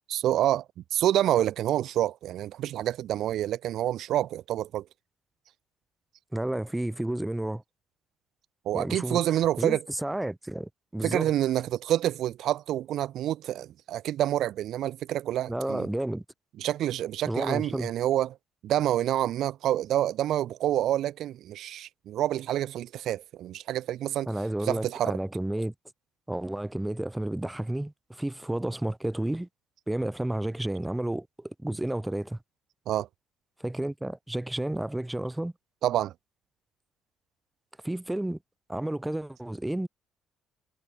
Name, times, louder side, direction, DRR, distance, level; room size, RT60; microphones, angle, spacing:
voice 1, 0.1-0.6 0.9-4.8 8.7-9.8 11.0-15.9 16.6-18.4 18.6-24.3 24.7-25.2 32.9-33.1 35.8-36.1, right 12 dB, 70° right, 0.3 m, -27 dB
voice 2, 6.3-7.6 8.7-11.3 15.5-16.2 17.3-17.9 24.3-25.7 26.3-29.5 29.9-32.4 33.6-35.5 37.8-38.4 38.7-39.9, right 1 dB, 5° right, 0.5 m, -31 dB
cardioid pair, 115°, 0 cm